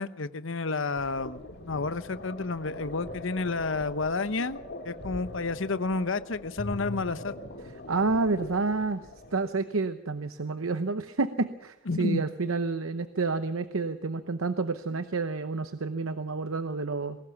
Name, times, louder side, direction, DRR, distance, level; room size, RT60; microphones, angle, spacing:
voice 1, 0.0-1.4 1.7-4.6 4.8-7.3 11.9-12.3, left 3 dB, 70° left, 13 dB, 0.9 m, -30 dB
sound 1, 1.0-9.5, left 1 dB, 50° left, 2.3 m, -42 dB
voice 2, 7.9-9.0 9.3-17.2, right 3 dB, 85° right, 11 dB, 0.9 m, -29 dB
21.0 x 17.5 x 7.2 m, 0.85 s
head